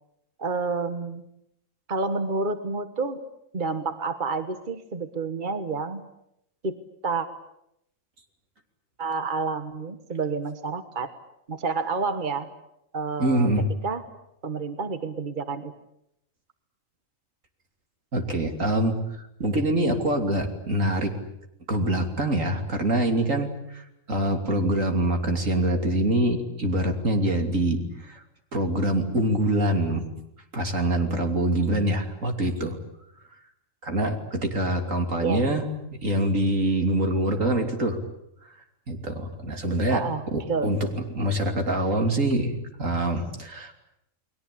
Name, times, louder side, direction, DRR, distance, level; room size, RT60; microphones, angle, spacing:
voice 1, 0.4-1.2 1.9-3.2 3.5-6.1 6.6-6.8 7.0-7.3 9.0-11.1 11.5-12.5 12.9-13.5 13.8-14.0 14.4-15.7 35.2-35.4 39.9-40.7, right 4 dB, 40° right, 9 dB, 1.5 m, -29 dB
voice 2, 13.2-13.7 18.1-21.1 21.7-28.2 28.5-30.1 30.5-32.8 33.8-35.7 36.0-38.0 38.9-40.0 40.3-40.8 41.2-42.5 42.8-43.7, right 1 dB, 75° right, 4 dB, 3.4 m, -25 dB
30.0 x 21.0 x 8.6 m, 0.80 s
omnidirectional pair, 1.4 m